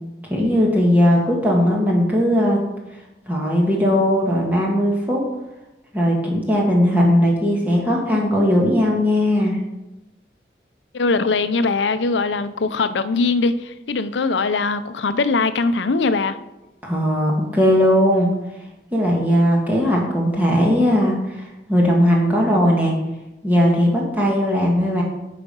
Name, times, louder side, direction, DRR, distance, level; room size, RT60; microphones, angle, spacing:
voice 1, 0.3-2.6 3.3-5.2 5.9-9.6 16.8-18.3 18.9-22.9 23.4-25.0, equal, 10° right, 1.5 m, -18 dB
voice 2, 10.9-16.4, left 3 dB, 90° left, 0.6 m, -21 dB
9.7 x 5.1 x 5.3 m
head